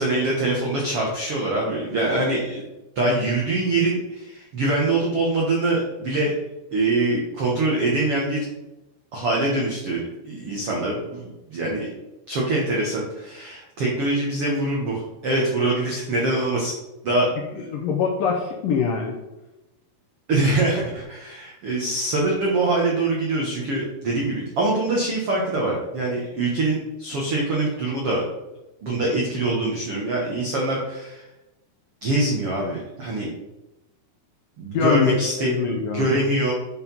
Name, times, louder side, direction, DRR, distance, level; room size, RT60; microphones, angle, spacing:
voice 1, 0.0-2.6 2.9-6.3 6.7-8.5 9.1-11.9 12.3-16.7 17.0-17.7 20.3-28.2 28.8-31.2 32.0-33.3 34.6-36.5, right 2 dB, 80° right, -3 dB, 1.2 m, -24 dB
voice 2, 17.7-19.1 34.7-36.2, left 5 dB, 75° left, 0 dB, 2.1 m, -23 dB
9.7 x 4.8 x 5.4 m, 0.99 s
omnidirectional pair, 5.0 m